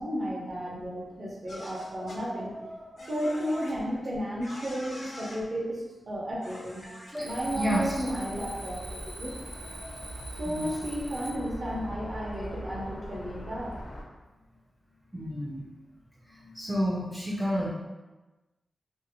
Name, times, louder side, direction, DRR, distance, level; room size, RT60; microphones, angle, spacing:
voice 1, 0.0-6.8 7.2-8.8 9.2-9.3 9.7-13.7, equal, 40° right, -4 dB, 0.6 m, -33 dB
sound 1, 1.5-2.2 3.0-3.7 4.4-5.4 6.4-7.1, left 1 dB, 85° left, 1.0 m, -44 dB
Alarm, 7.2-11.6, right 1 dB, 85° right, 0.4 m, -44 dB
sound 2, 7.3-14.0, equal, 50° left, 0.5 m, -42 dB
voice 2, 7.5-8.0 10.5-10.7 15.1-15.7 16.3-17.7, equal, 5° right, -6 dB, 0.4 m, -30 dB
2.5 x 2.0 x 2.8 m, 1.1 s
wide cardioid pair, 130°, 0 cm